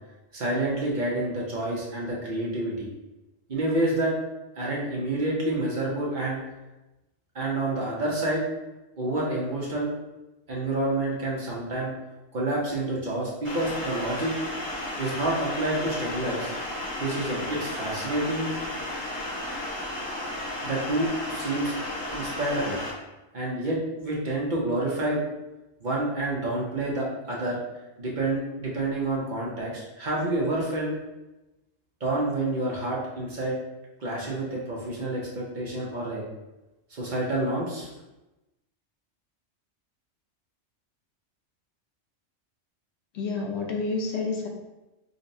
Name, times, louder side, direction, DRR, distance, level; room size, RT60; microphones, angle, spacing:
voice 1, 0.3-2.9 3.5-4.1 4.6-6.4 7.3-8.4 9.0-9.9 10.5-11.9 12.3-14.3 15.0-16.5 17.0-18.5 20.6-21.7 22.1-22.8 23.3-25.2 25.8-27.6 28.0-30.9 32.0-33.6 34.0-36.2 36.9-37.9, right 2 dB, 50° right, -4 dB, 0.7 m, -28 dB
sound 1, 13.4-22.9, left 1 dB, 15° right, 0.6 m, -33 dB
voice 2, 43.1-44.5, left 3 dB, 70° left, 0 dB, 0.9 m, -29 dB
5.1 x 2.1 x 2.6 m, 1.0 s
omnidirectional pair, 1.2 m